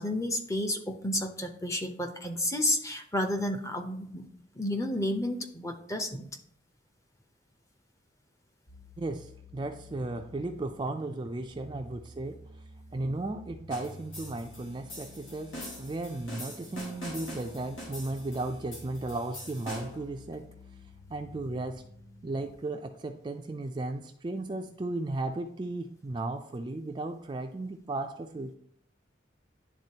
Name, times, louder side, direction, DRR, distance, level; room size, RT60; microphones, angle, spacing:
voice 1, 0.0-4.3 4.5-6.3, left 1 dB, 15° left, 5 dB, 0.6 m, -31 dB
sound 1, 8.7-22.5, left 1 dB, 70° left, 1.3 m, -51 dB
voice 2, 9.0-12.4 12.9-20.5 21.1-21.8 22.2-28.5, right 2 dB, 25° right, 5 dB, 0.3 m, -35 dB
sound 2, 13.7-20.1, left 1 dB, 90° left, 2.1 m, -43 dB
10.5 x 3.7 x 2.8 m, 0.66 s
head